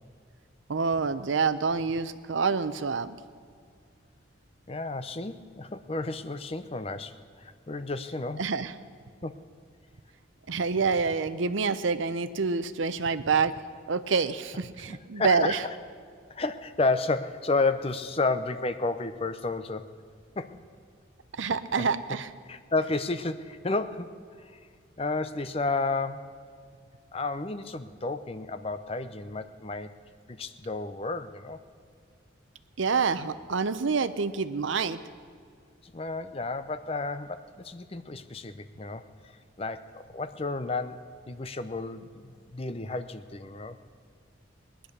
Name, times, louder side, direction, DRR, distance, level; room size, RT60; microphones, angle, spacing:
voice 1, 0.7-3.1 8.4-8.7 10.5-13.5 13.9-15.6 21.4-22.3 32.8-35.0, right 5 dB, 75° right, 13 dB, 0.7 m, -27 dB
voice 2, 4.7-8.4 9.2-9.4 14.9-15.6 16.3-19.9 20.4-20.6 21.4-21.9 22.5-24.2 24.5-24.6 25.0-26.4 27.1-29.9 30.3-31.6 35.9-43.8, left 3 dB, 30° left, 11 dB, 0.6 m, -32 dB
20.5 x 10.5 x 6.6 m, 2.1 s
head